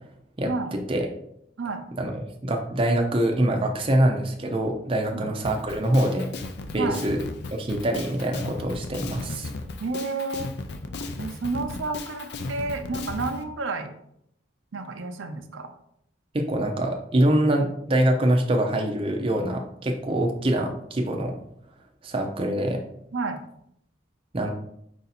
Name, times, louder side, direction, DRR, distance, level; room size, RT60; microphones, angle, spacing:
voice 1, 0.4-1.1 2.0-6.3 6.7-7.2 7.5-9.5 16.3-21.3 22.0-22.8 24.3-24.5, right 1 dB, 30° right, 2 dB, 0.5 m, -24 dB
Drum kit, 5.4-13.4, left 3 dB, 60° left, 0.4 m, -35 dB
voice 2, 9.8-10.5 11.2-13.9 14.7-15.7 23.1-23.4, right 3 dB, 85° right, 6 dB, 0.6 m, -30 dB
4.8 x 2.7 x 4.1 m, 0.74 s
head